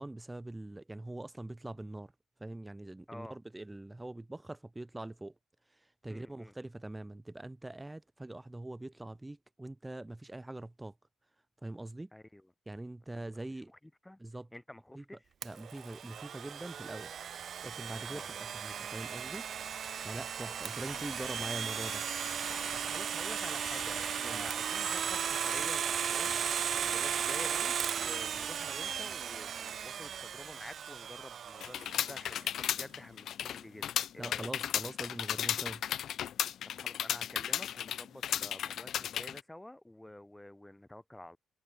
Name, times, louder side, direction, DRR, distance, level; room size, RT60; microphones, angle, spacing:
voice 1, 0.0-2.1 2.4-5.3 5.7-10.9 11.6-12.1 12.7-13.7 14.2-14.5 14.9-15.0 15.4-17.1 17.6-19.4 20.0-22.0 24.2-24.5 34.2-35.8, right 2 dB, 10° right, 5.1 m, -43 dB
voice 2, 6.1-6.5 12.1-12.5 13.1-13.3 13.6-14.2 14.5-15.3 18.1-18.3 20.4-20.6 22.8-34.5 36.7-41.4, left 1 dB, 10° left, 6.5 m, -49 dB
Domestic sounds home sounds, 15.4-32.2, right 8 dB, 60° right, 2.2 m, -36 dB
sound 1, 20.5-26.6, left 7 dB, 50° left, 3.5 m, -50 dB
sound 2, 31.6-39.4, left 10 dB, 70° left, 0.7 m, -35 dB
cardioid pair, 90°, 0 cm